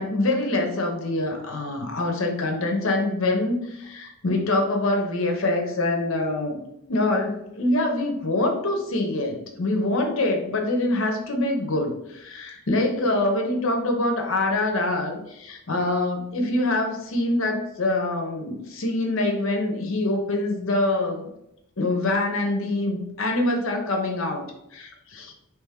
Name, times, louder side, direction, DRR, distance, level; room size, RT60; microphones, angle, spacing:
voice 1, 0.0-6.6 6.9-21.2 21.8-24.5 24.7-25.3, left 2 dB, 60° left, 3 dB, 0.8 m, -25 dB
3.4 x 3.0 x 3.5 m, 0.81 s
head